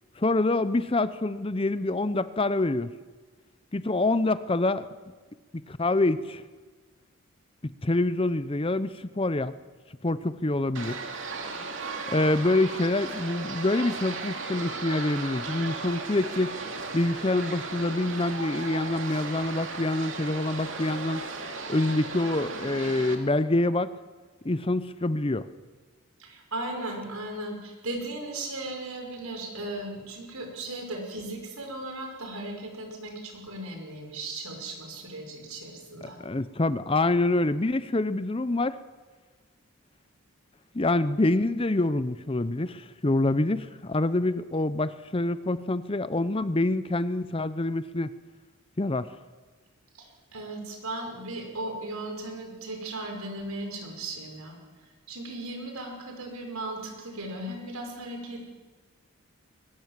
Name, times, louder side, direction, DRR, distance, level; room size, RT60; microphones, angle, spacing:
voice 1, 0.2-2.9 3.7-4.9 5.7-6.4 7.8-9.5 10.0-11.0 12.1-16.5 16.9-21.2 21.7-23.9 24.4-25.5 36.2-38.8 40.7-48.1 48.8-49.1, left 2 dB, 25° left, 14 dB, 0.6 m, -26 dB
sound 1, 10.7-23.1, right 4 dB, 60° right, 2.7 m, -36 dB
voice 2, 26.2-36.2 49.9-54.6 55.1-58.5, right 2 dB, 85° right, 3 dB, 5.7 m, -37 dB
22.0 x 20.0 x 7.5 m, 1.4 s
head